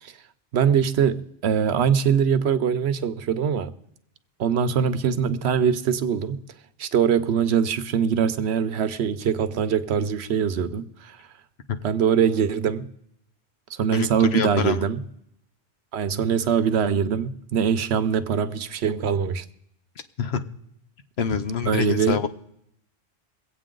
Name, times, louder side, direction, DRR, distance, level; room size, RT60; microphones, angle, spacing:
voice 1, 0.5-3.7 4.4-6.4 6.8-11.2 11.8-12.9 13.7-15.0 15.9-19.4 21.7-22.2, right 7 dB, 85° right, 1.0 m, -23 dB
voice 2, 13.9-14.8 20.2-20.4 21.2-22.3, left 7 dB, 75° left, 1.1 m, -26 dB
23.0 x 8.4 x 3.8 m
omnidirectional pair, 1.1 m